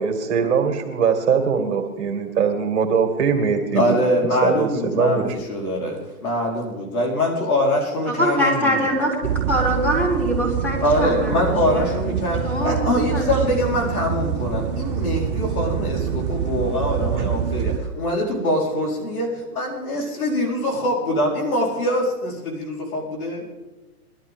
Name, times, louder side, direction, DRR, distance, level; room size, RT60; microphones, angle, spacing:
voice 1, 0.0-4.0 4.4-5.3 17.2-17.3, right 6 dB, 45° right, 3 dB, 2.3 m, -21 dB
voice 2, 3.7-8.8 10.8-23.4, left 1 dB, 65° left, -1 dB, 4.7 m, -23 dB
voice 3, 8.1-9.2 9.5-12.1 12.4-13.7, equal, 5° left, -5 dB, 4.3 m, -23 dB
sound 1, 9.2-17.8, right 8 dB, 25° right, 0.6 m, -25 dB
21.5 x 12.5 x 3.8 m, 1.2 s
hypercardioid pair, 140°, 47 cm